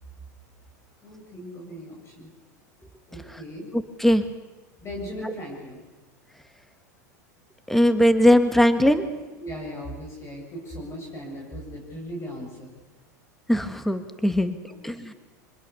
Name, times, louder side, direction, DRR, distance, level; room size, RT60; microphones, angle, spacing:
voice 1, 1.0-2.3 3.1-3.7 4.8-5.8 9.4-12.7 14.7-15.2, equal, 30° left, -1 dB, 7.8 m, -38 dB
voice 2, 7.7-9.1 13.5-14.6 14.8-15.1, equal, 5° left, 10 dB, 1.7 m, -19 dB
25.0 x 21.5 x 7.1 m, 1.2 s
hypercardioid pair, 95°, 9 cm